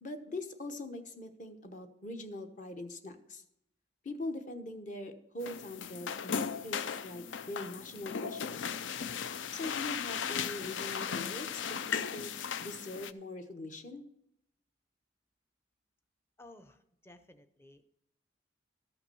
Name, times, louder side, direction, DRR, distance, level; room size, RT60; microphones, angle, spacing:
voice 1, 0.0-3.4 4.0-8.7 9.5-12.3 12.6-14.0, left 2 dB, 40° left, 6 dB, 1.0 m, -42 dB
sound 1, 5.4-13.1, left 7 dB, 80° left, 0.5 m, -37 dB
voice 2, 16.4-17.8, left 2 dB, 15° left, 9 dB, 0.6 m, -56 dB
13.5 x 5.8 x 6.8 m, 0.79 s
head